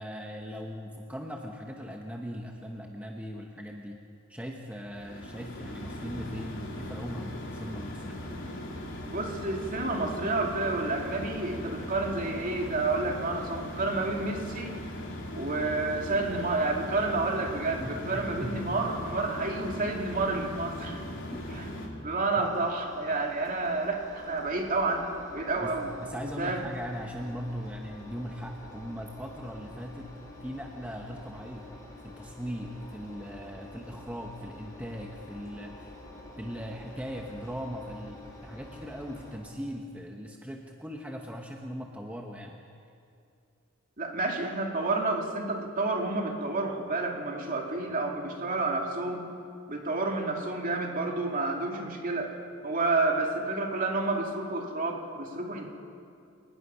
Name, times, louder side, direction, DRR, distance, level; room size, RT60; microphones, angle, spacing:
voice 1, 0.0-4.0 4.3-8.2 17.8-18.8 20.9-21.7 22.4-22.6 25.6-25.7 26.0-30.1 30.4-31.7 32.0-35.9 36.4-42.6, equal, 5° right, 1 dB, 1.1 m, -39 dB
sound 1, 4.9-21.9, left 1 dB, 60° left, 3.7 m, -39 dB
voice 2, 9.1-14.8 15.3-21.0 21.5-25.1 25.3-25.9 26.4-26.6 44.0-49.3 49.7-52.3 52.6-55.7, right 3 dB, 40° right, 1 dB, 2.6 m, -30 dB
Engine, 22.4-39.4, left 1 dB, 15° left, 4.1 m, -48 dB
27.5 x 19.5 x 5.7 m, 2.5 s
head